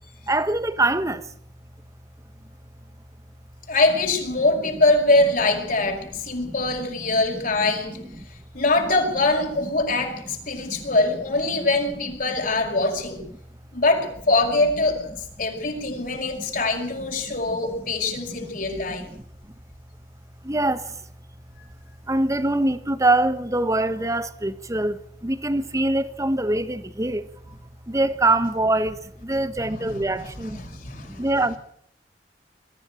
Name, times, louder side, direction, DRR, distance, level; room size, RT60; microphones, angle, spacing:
voice 1, 0.3-1.3 6.5-7.4 7.9-8.3 10.6-11.0 15.9-16.5 17.5-17.9 18.3-19.2 20.4-21.0 22.1-27.6 27.9-31.6, right 2 dB, 20° right, 1.3 m, -25 dB
voice 2, 3.7-8.0 8.5-13.2 13.7-15.1 15.4-19.1 29.7-31.3, left 2 dB, 50° left, 5.6 m, -23 dB
22.5 x 14.5 x 9.2 m
head